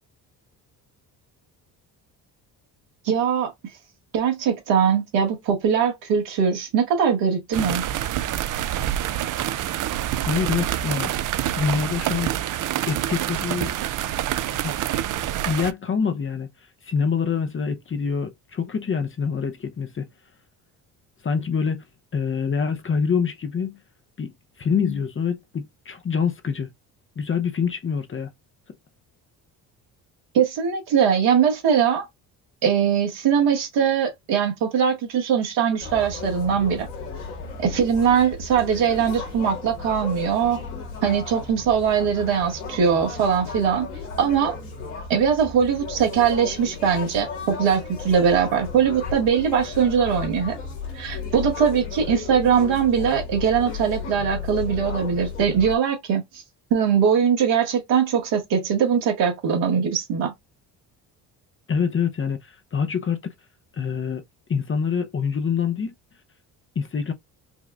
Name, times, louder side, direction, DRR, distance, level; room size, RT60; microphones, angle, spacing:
voice 1, 3.1-3.5 4.1-7.8 30.3-32.1 32.6-36.9 37.6-40.6 41.0-43.9 44.2-44.5 45.1-50.6 51.0-56.4 56.7-60.3, right 7 dB, 80° right, 1.8 m, -21 dB
sound 1, 7.5-15.7, right 12 dB, 45° right, 0.5 m, -27 dB
voice 2, 10.2-11.1 11.6-12.3 12.9-13.7 14.6-15.2 15.5-16.5 16.8-20.1 21.2-21.8 22.1-23.8 24.2-24.3 24.6-26.7 27.2-28.3 61.7-63.2 63.7-64.2 64.5-65.9 66.8-67.1, left 6 dB, 30° left, 0.7 m, -25 dB
sound 2, 35.8-55.8, left 5 dB, 90° left, 1.8 m, -34 dB
5.2 x 2.4 x 2.3 m
supercardioid pair, 65°, 44 cm